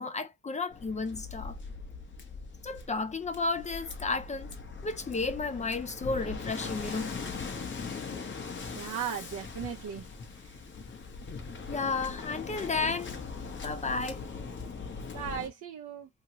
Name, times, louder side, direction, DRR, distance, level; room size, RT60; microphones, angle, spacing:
voice 1, 0.0-1.6 2.6-4.5 4.8-7.1 11.7-13.2 13.6-14.2, left 3 dB, 25° left, 0.5 m, -32 dB
Waves surf, 0.7-15.5, left 4 dB, 40° left, 1.0 m, -40 dB
voice 2, 8.7-10.1 10.4-10.5 15.1-16.1, right 8 dB, 70° right, 0.8 m, -37 dB
2.9 x 2.8 x 2.8 m
cardioid pair, 90°, 30 cm